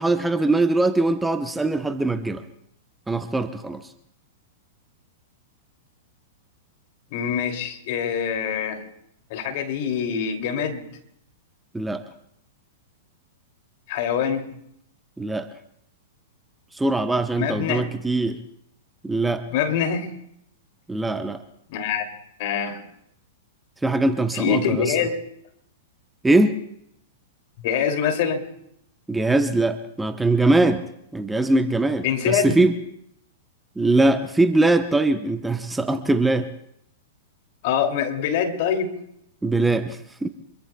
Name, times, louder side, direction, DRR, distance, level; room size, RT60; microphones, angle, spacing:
voice 1, 0.0-2.4 3.1-3.8 11.7-12.0 15.2-15.5 16.7-18.4 19.0-19.4 20.9-21.4 23.8-24.9 26.2-26.6 29.1-30.8 31.1-32.7 33.8-36.5 39.4-40.3, right 2 dB, 10° right, 8 dB, 0.9 m, -21 dB
voice 2, 7.1-8.8 9.3-10.8 13.9-14.5 17.4-17.9 19.5-20.1 21.7-22.1 22.4-22.8 24.3-25.2 27.6-28.4 32.0-32.6 37.6-38.9, left 7 dB, 55° left, 4 dB, 2.6 m, -24 dB
26.0 x 22.5 x 2.3 m, 0.75 s
hypercardioid pair, 110°, 0 cm